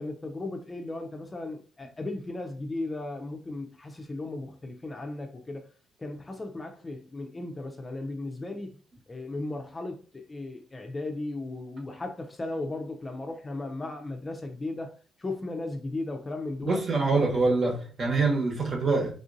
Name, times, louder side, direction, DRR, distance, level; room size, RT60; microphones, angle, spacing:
voice 1, 0.0-5.6 6.0-8.8 9.1-14.9 15.2-16.8 17.3-17.4, left 2 dB, 25° left, 0.5 m, -36 dB
voice 2, 16.6-19.1, right 3 dB, 50° right, 1.1 m, -25 dB
3.5 x 2.5 x 2.6 m
cardioid pair, 90°, 0 cm